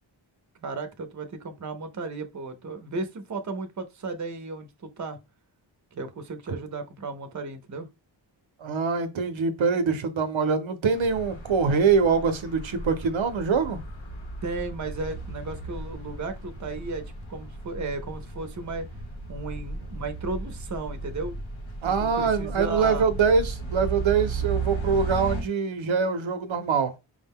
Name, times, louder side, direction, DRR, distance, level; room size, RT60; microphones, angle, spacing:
voice 1, 0.6-5.2 5.9-7.9 14.4-18.9 19.3-21.4 21.8-23.1, right 3 dB, 40° right, 0.6 m, -34 dB
voice 2, 8.6-13.8 21.8-26.9, right 5 dB, 85° right, 0.7 m, -24 dB
sound 1, 10.9-25.4, right 3 dB, 90° left, 1.3 m, -35 dB
4.9 x 2.1 x 3.5 m
wide cardioid pair, 90°, 46 cm